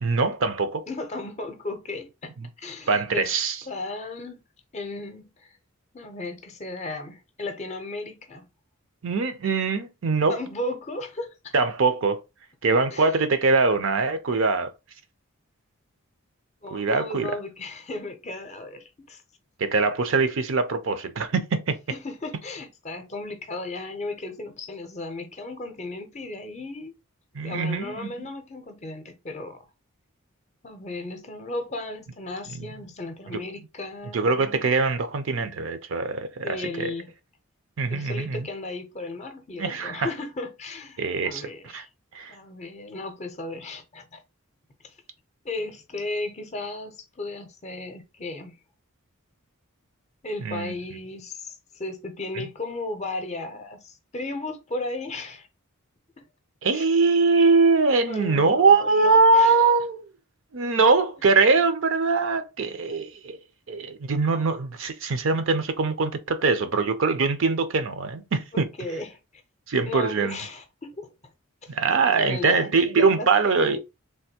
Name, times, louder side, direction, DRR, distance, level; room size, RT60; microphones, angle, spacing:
voice 1, 0.0-0.8 2.9-3.6 9.0-10.4 11.5-12.2 12.6-14.7 16.7-17.3 19.6-21.8 27.3-28.3 33.3-33.4 34.1-36.9 37.8-38.4 39.6-40.1 41.0-41.4 41.7-41.8 42.1-42.3 50.4-50.7 56.6-60.0 60.5-63.4 63.7-68.7 69.7-70.4 71.7-73.8, right 4 dB, 60° right, 0.5 m, -22 dB
voice 2, 0.9-3.3 3.6-4.4 4.7-5.5 5.9-8.5 10.3-11.5 12.9-13.0 14.3-14.4 16.6-19.2 21.9-26.9 27.4-29.7 30.6-34.3 36.4-37.1 37.9-41.9 42.3-44.2 44.8-44.9 45.4-48.6 50.2-55.5 56.7-56.8 58.1-59.7 68.5-69.2 69.8-71.1 71.6-73.8, left 2 dB, 30° left, 0.6 m, -35 dB
3.4 x 2.5 x 2.8 m
head